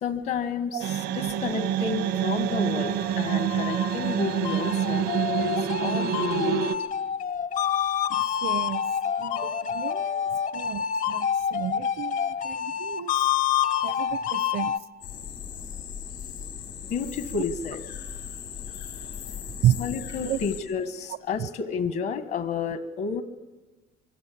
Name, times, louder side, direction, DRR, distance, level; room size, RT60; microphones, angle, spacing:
voice 1, 0.0-5.1 5.4-6.7 16.9-17.8 19.8-23.2, left 6 dB, 70° left, 11 dB, 1.6 m, -31 dB
sound 1, 0.8-6.8, right 9 dB, 90° right, 1.3 m, -27 dB
sound 2, 3.0-14.8, left 8 dB, 50° left, 0.7 m, -28 dB
voice 2, 8.1-8.8 9.2-13.1 13.8-14.7 19.6-19.8 20.2-20.4, right 12 dB, 75° right, 19 dB, 0.8 m, -31 dB
sound 3, 15.0-20.6, left 7 dB, 85° left, 5.3 m, -38 dB
24.5 x 23.5 x 8.6 m, 1.2 s
cardioid pair, 110°, 17 cm